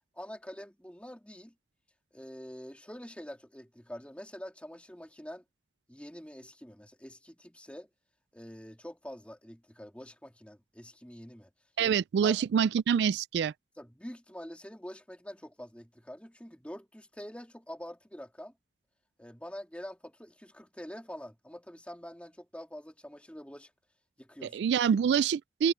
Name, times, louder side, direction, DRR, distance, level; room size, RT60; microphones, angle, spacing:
voice 1, 0.1-1.5 2.1-5.4 5.9-7.9 8.3-11.5 11.9-12.0 12.2-12.4 13.8-18.5 19.2-23.7 24.2-24.6, equal, 5° left, 2.8 m, -46 dB
voice 2, 11.8-13.5 24.5-25.7, right 7 dB, 75° right, 0.3 m, -26 dB
head